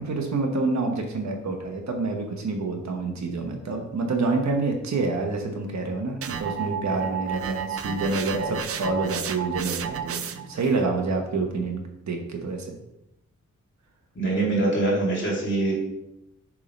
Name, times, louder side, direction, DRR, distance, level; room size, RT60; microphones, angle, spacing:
voice 1, 0.0-12.8, right 3 dB, 65° right, 3 dB, 1.1 m, -27 dB
sound 1, 6.2-10.6, right 7 dB, 50° right, 0.4 m, -31 dB
voice 2, 14.1-15.7, right 2 dB, 40° left, -5 dB, 2.6 m, -23 dB
7.1 x 3.7 x 5.2 m, 0.85 s
wide cardioid pair, 175°, 30 cm